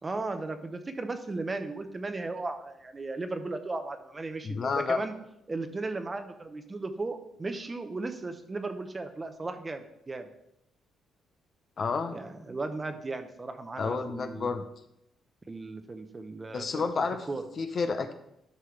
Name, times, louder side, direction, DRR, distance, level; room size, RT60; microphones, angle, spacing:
voice 1, 0.0-5.1 5.5-10.3 12.1-14.5 15.5-17.4, right 3 dB, 25° right, 8 dB, 0.9 m, -36 dB
voice 2, 4.4-5.0 11.8-12.2 13.8-14.6 16.5-17.3 17.6-18.1, left 4 dB, 45° left, 8 dB, 0.7 m, -30 dB
11.5 x 5.5 x 3.3 m, 0.80 s
cardioid pair, 90°, 0 cm